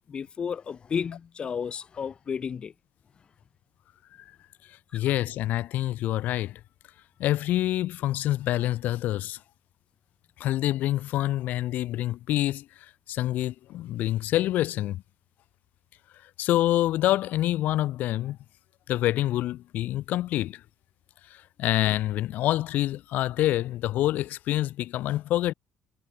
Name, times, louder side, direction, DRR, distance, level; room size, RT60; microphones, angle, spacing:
voice 1, 0.1-2.7 4.9-5.0, left 6 dB, 35° left, 4.5 m, -32 dB
voice 2, 4.9-6.6 7.2-9.4 10.4-15.0 16.4-18.4 18.9-20.6 21.3-25.5, left 14 dB, 70° left, 3.2 m, -26 dB
cardioid pair, 145°, 3 cm